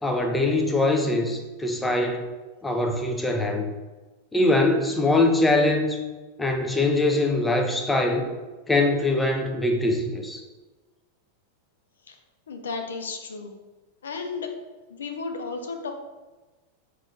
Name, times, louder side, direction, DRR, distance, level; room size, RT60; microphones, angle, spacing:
voice 1, 0.0-2.3 2.6-3.7 4.3-6.0 6.4-8.2 8.7-10.4, left 2 dB, 10° left, 3 dB, 0.5 m, -22 dB
voice 2, 12.5-13.6 14.0-14.5 14.9-15.9, left 4 dB, 65° left, 5 dB, 0.4 m, -33 dB
4.8 x 3.0 x 2.4 m, 1.2 s
figure-of-eight pair, 90°, 0 cm